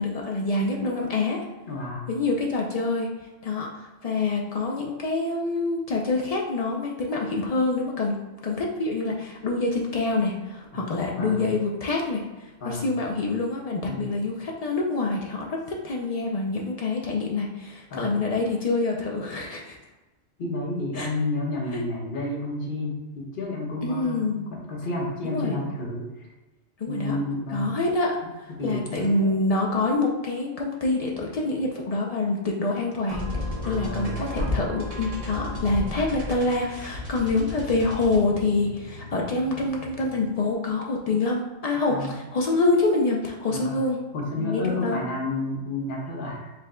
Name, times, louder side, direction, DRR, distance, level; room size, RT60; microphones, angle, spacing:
voice 1, 0.0-1.4 2.1-3.1 3.4-8.2 8.4-19.8 21.0-21.1 21.7-21.8 23.8-24.5 25.2-25.6 26.8-27.2 27.5-28.2 28.6-33.2 33.6-44.0 44.4-45.0, left 3 dB, 75° left, -1 dB, 0.3 m, -26 dB
voice 2, 1.6-2.1 11.1-11.5 12.6-12.9 13.8-14.1 17.9-18.2 20.4-26.3 26.9-27.7 28.2-29.3 33.6-34.2 41.9-42.2 43.5-43.8 44.1-46.5, left 2 dB, 45° left, -2 dB, 1.0 m, -31 dB
sound 1, 33.1-40.4, left 1 dB, 35° right, 0.8 m, -33 dB
4.8 x 2.2 x 3.6 m, 1.1 s
omnidirectional pair, 1.3 m